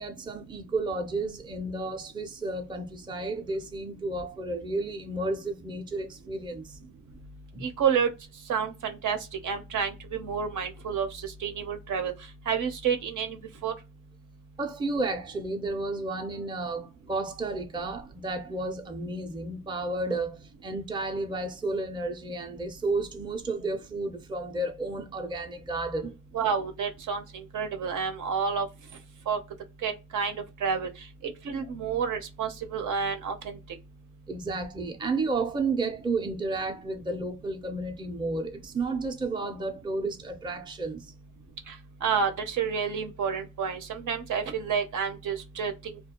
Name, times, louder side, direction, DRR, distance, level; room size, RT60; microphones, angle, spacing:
voice 1, 0.0-6.8 7.5-7.6 14.6-26.2 34.3-41.1, right 2 dB, 15° right, 0.4 m, -32 dB
voice 2, 7.6-8.1 8.5-9.2 9.4-12.1 12.5-13.7 26.3-28.7 29.3-29.4 29.8-30.9 31.4-33.6 41.7-41.8 42.0-46.0, right 6 dB, 70° right, 0.6 m, -29 dB
2.4 x 2.2 x 2.8 m
cardioid pair, 105°, 31 cm